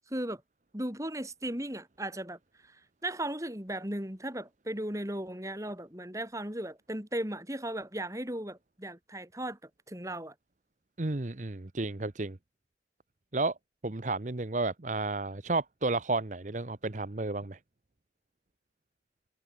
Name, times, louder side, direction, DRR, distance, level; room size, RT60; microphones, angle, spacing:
voice 1, 0.1-0.4 0.7-10.3, right 1 dB, 20° right, 4.2 m, -37 dB
voice 2, 11.0-12.4 13.3-13.5 13.8-17.6, right 3 dB, 45° right, 0.9 m, -32 dB
head